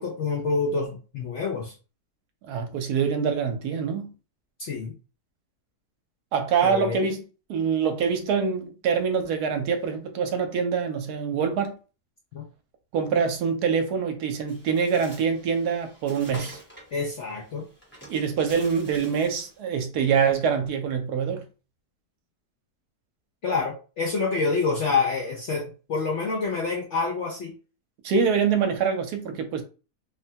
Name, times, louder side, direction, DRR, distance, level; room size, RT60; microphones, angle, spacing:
voice 1, 0.0-1.7 4.6-4.9 6.6-7.0 12.3-12.4 16.9-17.7 23.4-27.5, left 4 dB, 70° left, 0.7 m, -27 dB
voice 2, 2.5-4.1 6.3-7.2 7.5-11.7 12.9-16.6 18.1-21.5 28.0-29.6, right 6 dB, 75° right, 1.1 m, -25 dB
Bird, 14.5-19.6, right 1 dB, 10° left, 0.8 m, -47 dB
3.3 x 2.1 x 2.8 m
omnidirectional pair, 1.7 m